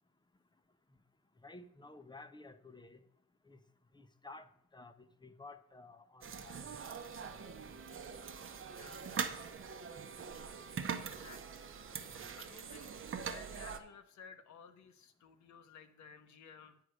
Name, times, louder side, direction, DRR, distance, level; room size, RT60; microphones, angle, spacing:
voice 1, 1.4-3.0 3.5-3.6 3.9-6.7 7.1-7.5, left 3 dB, 15° left, 10 dB, 0.7 m, -54 dB
sound 1, 6.2-13.8, right 6 dB, 45° right, 0.9 m, -43 dB
voice 2, 8.7-9.0 11.0-11.7 12.4-12.9 13.2-16.8, left 6 dB, 65° left, 8 dB, 0.9 m, -56 dB
8.9 x 4.8 x 6.4 m, 0.71 s
cardioid pair, 90°, 30 cm